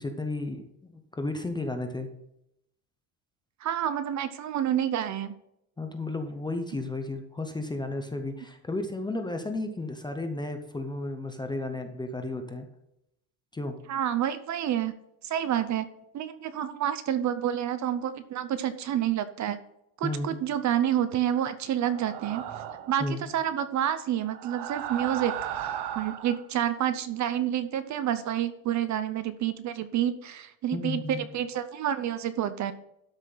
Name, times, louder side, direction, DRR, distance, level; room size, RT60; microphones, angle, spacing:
voice 1, 0.0-2.1 5.8-12.7 13.5-13.8 20.0-20.4 23.0-23.2 30.7-31.2, left 2 dB, 10° left, 5 dB, 0.5 m, -33 dB
voice 2, 3.6-5.3 13.9-14.9 15.2-15.9 16.1-19.6 20.0-22.5 22.9-32.7, right 10 dB, 35° right, 12 dB, 0.6 m, -29 dB
sound 1, 21.8-23.0 24.3-26.4, right 10 dB, 55° right, 1.1 m, -35 dB
12.5 x 6.5 x 3.9 m, 0.81 s
cardioid pair, 175°, 48 cm